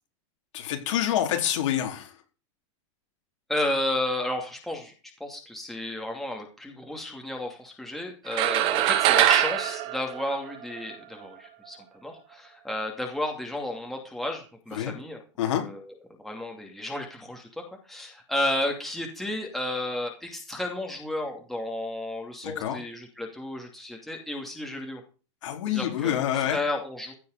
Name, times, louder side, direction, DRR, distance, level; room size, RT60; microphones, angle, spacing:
voice 1, 0.5-2.2 14.7-14.9 15.4-15.6 22.4-22.8 25.4-26.6, left 11 dB, 75° left, 2 dB, 4.3 m, -27 dB
voice 2, 3.5-4.9 5.2-15.2 15.6-15.8 16.2-25.0 25.7-27.1, left 1 dB, ahead, 1 dB, 2.6 m, -32 dB
sound 1, 8.3-10.9, right 13 dB, 35° right, 1.1 m, -23 dB
15.5 x 6.9 x 6.5 m, 0.35 s
supercardioid pair, 160°, 16 cm